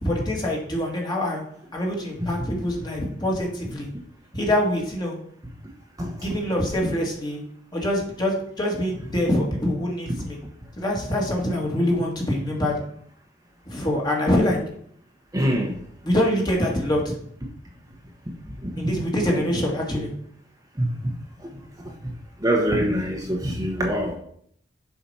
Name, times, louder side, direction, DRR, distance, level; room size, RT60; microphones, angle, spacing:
voice 1, 0.0-1.4 1.7-3.9 4.3-5.2 6.2-7.4 7.7-10.4 10.8-12.8 13.7-14.6 16.0-17.1 18.8-20.1, left 1 dB, 25° left, -2 dB, 2.1 m, -24 dB
voice 2, 6.0-6.3 15.3-15.7 18.6-18.7 19.3-19.4 20.8-20.9 22.4-24.2, equal, 20° right, 0 dB, 1.1 m, -24 dB
7.1 x 5.0 x 5.6 m, 0.65 s
head